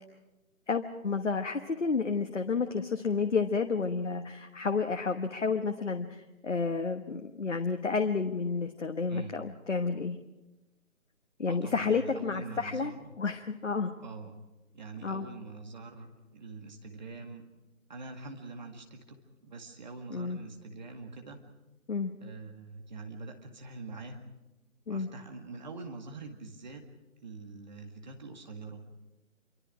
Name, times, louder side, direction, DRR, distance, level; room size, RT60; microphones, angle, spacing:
voice 1, 0.7-10.2 11.4-12.9 13.2-13.9 15.0-15.2 20.1-20.4 21.9-22.1 24.9-25.1, left 4 dB, 55° left, 6 dB, 1.3 m, -31 dB
voice 2, 9.1-9.4 11.5-13.1 14.0-14.4 14.7-17.5 17.9-19.2 19.4-21.4 22.2-24.2 24.9-26.8 27.2-28.8, right 3 dB, 30° right, 3 dB, 2.0 m, -44 dB
26.5 x 24.5 x 4.9 m, 1.0 s
figure-of-eight pair, 155°, 42 cm